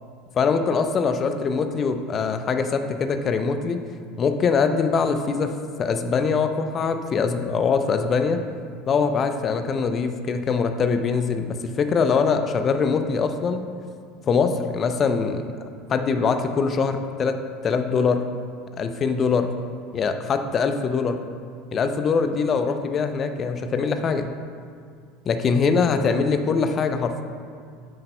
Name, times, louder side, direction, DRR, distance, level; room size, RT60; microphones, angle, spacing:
voice 1, 0.3-3.8 4.2-5.5 5.8-8.4 8.9-13.6 14.3-15.5 15.9-17.4 17.6-18.2 18.8-19.5 19.9-21.2 21.7-24.3 25.3-27.2, left 5 dB, 35° left, 8 dB, 0.5 m, -23 dB
9.7 x 7.5 x 2.2 m, 2.2 s
figure-of-eight pair, 75°, 0 cm